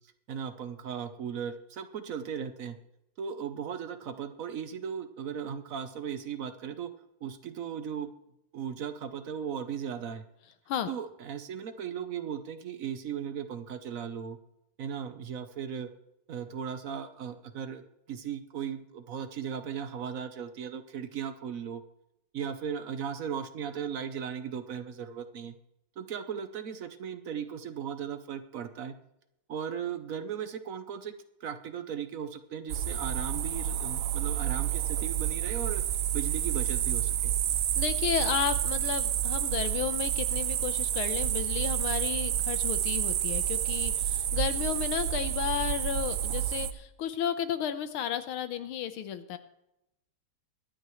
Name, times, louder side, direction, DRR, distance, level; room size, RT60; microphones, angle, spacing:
voice 1, 0.3-2.8 3.2-6.9 7.2-8.1 8.5-10.2 10.9-14.4 14.8-15.9 16.3-17.8 18.1-21.8 22.3-25.5 26.0-28.9 29.5-31.1 31.4-35.8 36.1-37.3, right 8 dB, 60° right, 9 dB, 0.9 m, -37 dB
sound 1, 32.7-46.7, right 11 dB, 85° right, 0.7 m, -29 dB
voice 2, 37.8-49.4, left 10 dB, 85° left, 10 dB, 1.8 m, -33 dB
23.5 x 8.8 x 3.1 m, 0.86 s
omnidirectional pair, 2.3 m